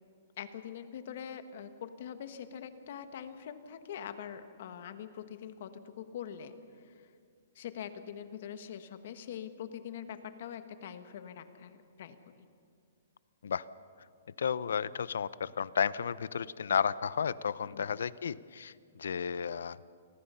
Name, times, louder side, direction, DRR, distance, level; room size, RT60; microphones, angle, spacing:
voice 1, 0.4-7.1 7.5-12.2 17.7-18.0, left 8 dB, 50° left, 10 dB, 1.4 m, -44 dB
voice 2, 14.4-18.7 19.0-19.8, left 7 dB, 85° left, 19 dB, 0.6 m, -32 dB
28.5 x 20.0 x 5.7 m, 2.3 s
hypercardioid pair, 165°, 0 cm